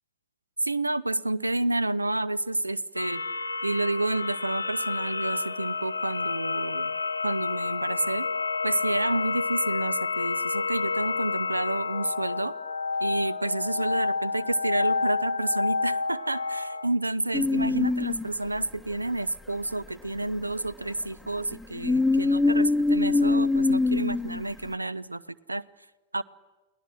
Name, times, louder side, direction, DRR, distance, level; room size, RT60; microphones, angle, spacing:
voice 1, 0.6-3.2 3.6-7.0 7.2-8.3 8.6-12.5 13.0-25.2 25.5-25.6 26.1-26.2, right 2 dB, 85° right, 22 dB, 0.6 m, -29 dB
sound 1, 3.0-16.9, left 4 dB, 80° left, 0.9 m, -30 dB
sound 2, 17.3-18.5 21.5-24.7, left 3 dB, ahead, 1.0 m, -23 dB
29.5 x 19.5 x 6.3 m, 1.2 s
figure-of-eight pair, 90°, 0 cm